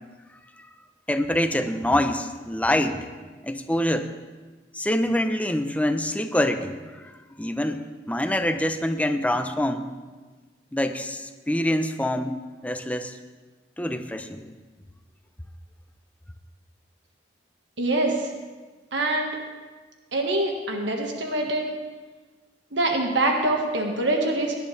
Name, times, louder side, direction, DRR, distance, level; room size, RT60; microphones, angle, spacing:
voice 1, 1.1-3.1 3.4-4.1 4.7-7.1 7.4-9.9 10.7-13.1 13.8-14.5, left 1 dB, 10° left, 8 dB, 0.6 m, -25 dB
voice 2, 17.8-18.3 18.9-19.4 20.1-21.7 22.7-24.5, right 2 dB, 80° right, 1 dB, 1.6 m, -24 dB
18.5 x 11.0 x 3.3 m, 1.3 s
head